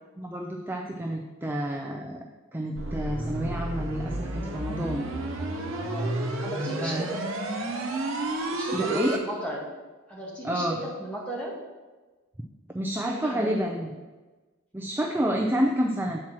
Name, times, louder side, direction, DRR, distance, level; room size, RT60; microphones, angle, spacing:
voice 1, 0.2-2.2 2.5-5.1 6.8-7.0 8.7-9.2 10.4-10.8 12.7-13.9 14.7-16.2, equal, 10° right, 1 dB, 0.4 m, -29 dB
Squarewave Build-up, 2.7-9.2, right 2 dB, 80° right, 1.0 m, -31 dB
voice 2, 5.7-7.2 8.5-9.7 10.1-11.6 13.0-13.8, right 1 dB, 5° left, -3 dB, 1.5 m, -35 dB
7.4 x 4.5 x 6.0 m, 1.2 s
head